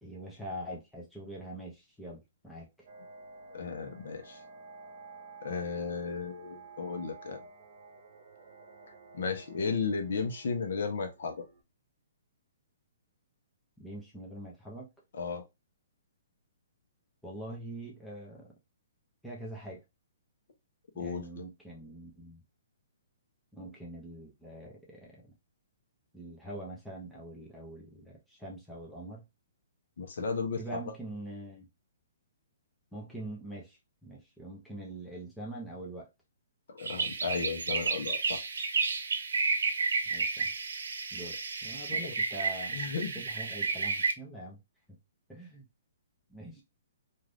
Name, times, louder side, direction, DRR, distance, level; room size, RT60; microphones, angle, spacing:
voice 1, 0.0-2.9 13.8-14.9 17.2-18.5 19.2-19.8 21.0-22.4 23.5-25.2 26.1-29.3 30.6-31.6 32.9-36.1 40.1-40.5 41.1-44.6 45.3-45.7 46.3-46.6, right 1 dB, ahead, 0.7 m, -44 dB
sound 1, 2.9-11.6, right 4 dB, 50° right, 0.9 m, -52 dB
voice 2, 3.5-4.4 5.4-7.4 9.1-11.5 15.1-15.4 21.0-21.5 30.0-30.6 36.7-38.4 41.9-42.0 42.7-43.1, left 5 dB, 65° left, 0.9 m, -34 dB
sound 2, 36.8-44.1, right 4 dB, 90° right, 0.7 m, -31 dB
2.6 x 2.5 x 3.3 m
hypercardioid pair, 160°, 0 cm